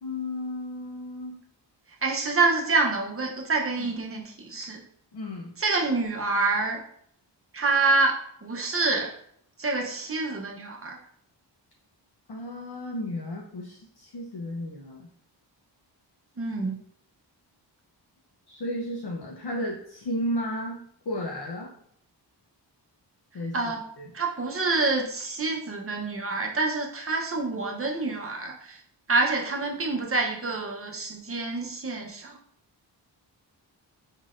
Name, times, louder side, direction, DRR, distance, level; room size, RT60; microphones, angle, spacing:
voice 1, 0.0-1.3 3.8-3.9 5.1-5.5 12.3-15.1 18.5-21.7 23.3-23.6 24.0-24.1, left 1 dB, 60° left, -3 dB, 0.8 m, -33 dB
voice 2, 2.0-4.8 5.6-6.8 7.5-9.1 9.6-11.0 16.4-16.8 23.5-23.8 24.1-28.8 29.1-32.4, right 3 dB, 30° right, 1 dB, 0.8 m, -27 dB
5.4 x 3.8 x 2.5 m, 0.67 s
wide cardioid pair, 160°, 44 cm